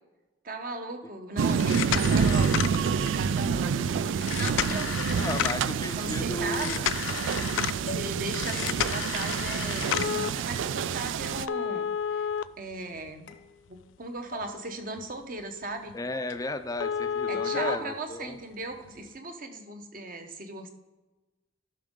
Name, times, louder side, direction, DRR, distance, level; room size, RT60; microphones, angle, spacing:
voice 1, 0.4-6.9 7.8-12.3 12.6-13.3 13.7-16.0 17.3-20.7, right 2 dB, 45° right, 5 dB, 1.0 m, -38 dB
sound 1, 1.4-11.5, right 6 dB, 80° right, 0.3 m, -28 dB
sound 2, 1.5-3.2 4.2-5.7 6.5-7.8 8.3-10.3 11.5-13.3 13.8-13.9 14.4-14.5 15.0-15.1 15.4-15.5 15.9-16.0 16.3-16.4 16.8-17.8 18.8-18.9, left 9 dB, 85° left, 0.3 m, -31 dB
voice 2, 5.2-6.8 15.9-18.4, left 2 dB, 20° left, 9 dB, 0.4 m, -34 dB
sound 3, 7.2-7.5 7.9-8.3 8.5-9.1 9.6-10.2 10.5-11.2 11.5-12.0 12.4-12.9 13.3-14.0 14.3-14.9, left 2 dB, 65° left, 0.8 m, -48 dB
12.0 x 6.2 x 3.7 m, 1.1 s
head